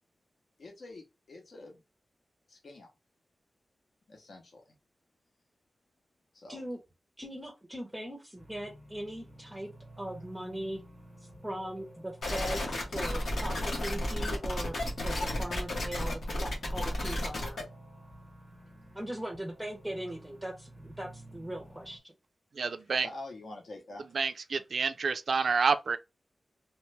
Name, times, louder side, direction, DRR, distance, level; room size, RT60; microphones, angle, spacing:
voice 1, 0.6-1.8 2.5-2.9 4.1-4.7 6.3-6.6 23.0-24.0, left 2 dB, 70° left, 0.7 m, -46 dB
voice 2, 7.2-9.7 10.0-10.8 11.4-12.6 12.9-14.7 15.0-17.6 18.9-22.1, right 1 dB, 10° right, 0.5 m, -39 dB
sound 1, 8.4-22.0, right 1 dB, 15° left, 0.9 m, -51 dB
sound 2, 12.2-17.6, left 1 dB, 90° left, 1.0 m, -32 dB
voice 3, 22.5-23.1 24.1-26.0, right 5 dB, 70° right, 0.3 m, -28 dB
3.0 x 2.2 x 3.1 m
wide cardioid pair, 125°, 0 cm